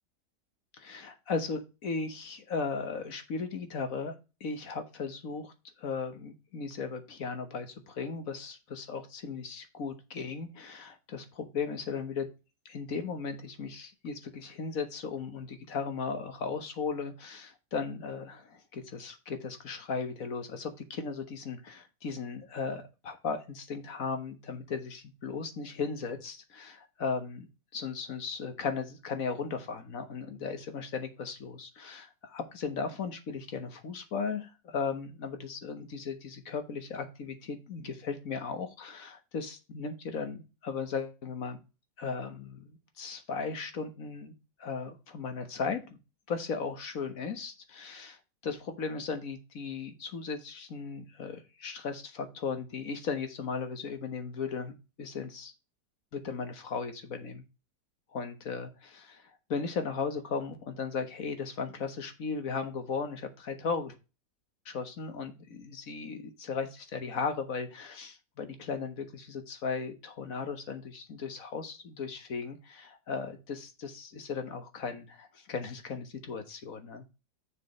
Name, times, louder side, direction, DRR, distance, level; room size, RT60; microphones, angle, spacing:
voice 1, 0.8-4.1 4.4-5.5 5.8-12.3 12.6-27.5 27.7-41.6 42.0-44.3 44.6-46.0 46.3-48.2 48.4-55.5 56.1-57.4 58.1-59.2 59.5-63.9 64.6-77.0, left 5 dB, 55° left, 8 dB, 1.6 m, -36 dB
6.8 x 5.0 x 5.1 m, 0.29 s
omnidirectional pair, 1.9 m